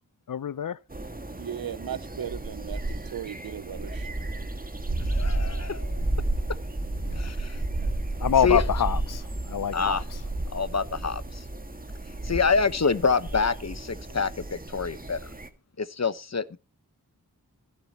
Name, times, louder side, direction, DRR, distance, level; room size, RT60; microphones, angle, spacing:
voice 1, 0.3-0.8 7.1-7.3 8.2-10.0, left 8 dB, 60° left, 0.6 m, -26 dB
sound 1, 0.9-15.5, right 2 dB, 25° right, 1.8 m, -32 dB
voice 2, 1.4-4.1, right 9 dB, 70° right, 0.6 m, -37 dB
voice 3, 5.1-6.0 7.2-7.6 8.4-8.6 9.7-10.0 10.5-11.4 12.2-15.2 15.8-16.6, left 5 dB, 45° left, 1.0 m, -27 dB
18.0 x 11.5 x 2.9 m
wide cardioid pair, 75°, 36 cm